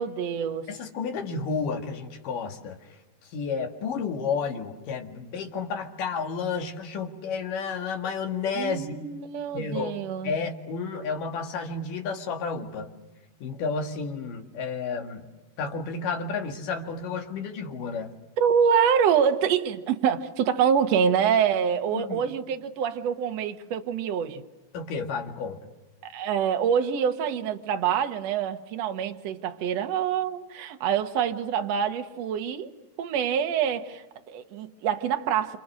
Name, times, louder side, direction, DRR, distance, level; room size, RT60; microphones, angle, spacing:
voice 1, 0.0-0.7 8.5-10.3 18.4-24.4 26.0-32.7 33.0-35.6, right 8 dB, 60° right, 5 dB, 1.9 m, -26 dB
voice 2, 0.7-2.8 3.3-9.0 9.5-9.9 10.2-12.9 13.4-15.3 15.6-18.1 21.9-22.2 24.7-25.6, left 5 dB, 60° left, 3 dB, 3.5 m, -31 dB
27.5 x 27.5 x 6.4 m, 1.1 s
omnidirectional pair, 4.5 m